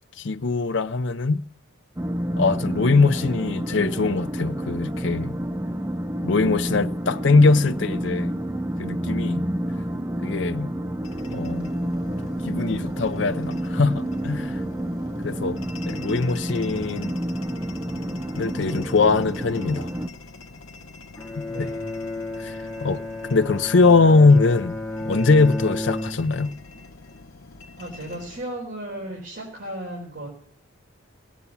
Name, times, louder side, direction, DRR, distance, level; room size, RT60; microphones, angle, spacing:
voice 1, 0.2-1.4 2.4-5.4 6.2-8.4 8.8-9.5 10.2-10.7 11.3-11.7 12.4-14.6 15.2-17.1 18.4-19.9 21.6-21.7 22.4-23.0 23.3-24.8 25.0-26.5, left 3 dB, 60° left, 0.5 m, -21 dB
sound 1, 2.0-20.1, equal, 15° right, 0.5 m, -29 dB
sound 2, 11.0-28.4, left 3 dB, 85° left, 1.0 m, -45 dB
Bowed string instrument, 21.2-26.6, left 1 dB, 15° left, 1.0 m, -32 dB
voice 2, 21.4-21.9 27.8-30.3, right 1 dB, 55° right, 4.5 m, -35 dB
18.0 x 8.4 x 7.1 m
head